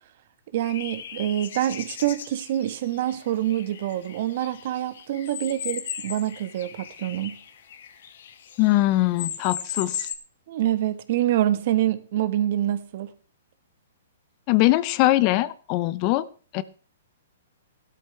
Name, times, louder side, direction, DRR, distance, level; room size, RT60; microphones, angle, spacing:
voice 1, 0.5-7.3 10.5-13.1, right 12 dB, 55° right, 1.4 m, -26 dB
sound 1, 0.6-8.8 9.2-10.2, left 8 dB, 65° left, 1.5 m, -37 dB
voice 2, 8.6-10.1 14.5-16.3 16.5-16.6, left 17 dB, 40° left, 0.7 m, -21 dB
15.0 x 12.5 x 3.4 m
hypercardioid pair, 135°, 0 cm